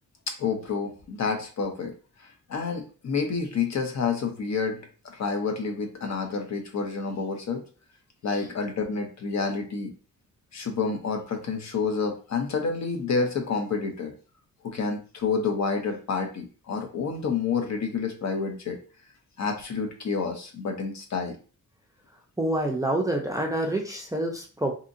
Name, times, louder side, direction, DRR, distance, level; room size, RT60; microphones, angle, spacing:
voice 1, 0.4-1.9 2.2-4.8 5.0-7.6 8.2-9.9 10.5-14.1 14.6-18.8 19.4-21.4, left 5 dB, 55° left, 4 dB, 0.7 m, -29 dB
voice 2, 22.4-24.7, right 1 dB, 10° right, 0 dB, 0.4 m, -27 dB
2.8 x 2.6 x 2.5 m, 0.37 s
wide cardioid pair, 130°, 33 cm